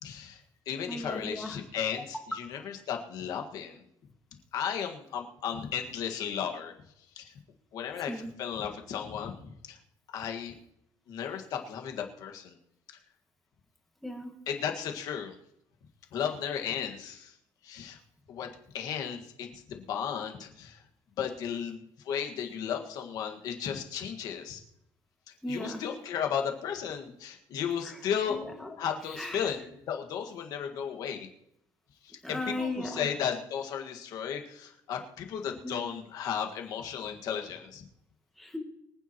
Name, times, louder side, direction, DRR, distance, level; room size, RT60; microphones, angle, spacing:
voice 1, 0.0-3.9 4.5-6.7 7.2-7.3 7.7-9.8 10.1-10.6 11.1-12.6 14.5-15.4 16.1-17.4 17.6-18.0 18.3-20.8 21.2-24.6 25.5-28.4 28.8-31.3 32.0-37.8, left 8 dB, 45° left, 4 dB, 1.7 m, -35 dB
voice 2, 0.9-1.6 8.1-8.3 14.0-14.3 25.4-25.8 27.8-28.0 28.3-28.7 29.1-29.5 32.2-33.1 35.6-35.8 38.4-38.6, left 1 dB, ahead, 1 dB, 1.9 m, -36 dB
24.0 x 9.3 x 3.0 m, 0.77 s
cardioid pair, 180°, 9 cm